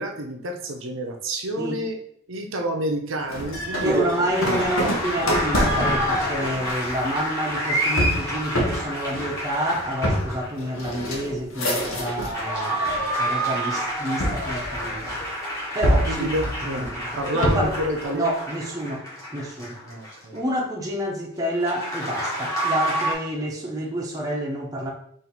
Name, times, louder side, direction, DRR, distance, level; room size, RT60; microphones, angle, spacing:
voice 1, 0.0-2.0 2.3-4.3 16.1-16.9 17.2-18.3 19.9-20.4, right 1 dB, 65° right, 2 dB, 0.7 m, -28 dB
sound 1, 3.3-12.4 12.8-13.5 14.2-15.3 15.8-17.9, equal, 70° left, 0.8 m, -27 dB
voice 2, 3.8-12.8 13.2-15.2 15.7-16.3 16.7-17.1 17.3-17.8 18.1-19.0 19.3-19.8 20.3-24.9, right 1 dB, 15° right, -2 dB, 0.7 m, -28 dB
sound 2, 4.1-10.7 12.0-20.4 21.6-23.1, equal, 15° left, 1.3 m, -29 dB
4.3 x 2.6 x 4.0 m, 0.67 s
head